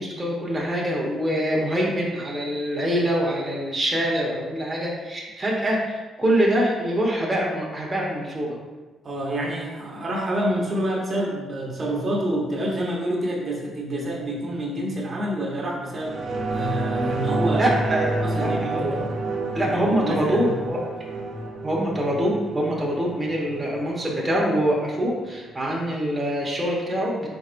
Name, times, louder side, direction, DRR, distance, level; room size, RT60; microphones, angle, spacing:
voice 1, 0.0-8.6 17.5-19.0 19.5-20.8 21.6-27.3, equal, 15° right, -3 dB, 0.9 m, -24 dB
voice 2, 9.0-17.7 18.2-19.0 19.6-20.5, right 1 dB, 40° right, -3 dB, 0.9 m, -28 dB
sound 1, 16.0-25.0 25.4-25.5, right 2 dB, 70° right, 1.1 m, -29 dB
4.3 x 4.1 x 2.5 m, 1.2 s
cardioid pair, 90°, 0 cm